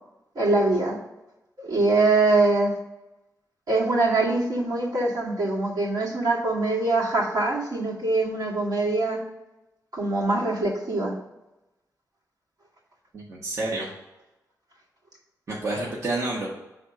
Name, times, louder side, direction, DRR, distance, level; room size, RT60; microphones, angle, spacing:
voice 1, 0.4-1.0 1.6-2.7 3.7-9.2 9.9-11.1, right 2 dB, 75° right, -5 dB, 2.1 m, -23 dB
voice 2, 13.1-13.9 15.5-16.5, right 2 dB, 45° right, -4 dB, 1.0 m, -29 dB
5.9 x 3.6 x 4.8 m, 0.97 s
wide cardioid pair, 145°, 7 cm